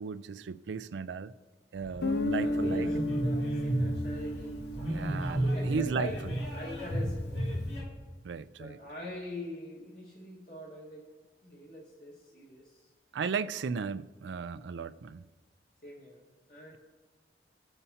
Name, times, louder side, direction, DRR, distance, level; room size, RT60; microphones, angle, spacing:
voice 1, 0.0-1.3 1.7-2.9 4.9-6.1 8.2-8.8 13.1-15.2, right 5 dB, 90° right, 0.4 m, -35 dB
sound 1, 1.7-7.8, right 1 dB, 85° left, 2.3 m, -33 dB
Guitar, 2.0-6.6, left 1 dB, 65° left, 0.5 m, -34 dB
voice 2, 2.4-4.6 5.4-6.2 6.5-7.5 8.6-11.1 11.4-12.9 15.8-16.2 16.5-16.8, equal, 50° left, 1.7 m, -43 dB
17.5 x 6.9 x 2.8 m
head